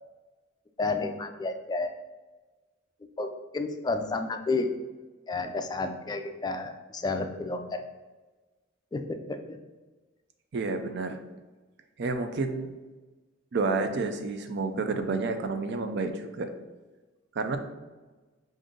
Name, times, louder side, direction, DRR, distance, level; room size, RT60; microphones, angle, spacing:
voice 1, 0.8-1.9 3.2-4.7 5.3-7.8 8.9-9.6, left 3 dB, 20° left, 6 dB, 0.3 m, -31 dB
voice 2, 10.5-11.2 12.0-12.7 13.5-16.5 17.4-17.6, right 3 dB, 60° right, 7 dB, 0.5 m, -30 dB
5.1 x 2.6 x 3.7 m, 1.2 s
head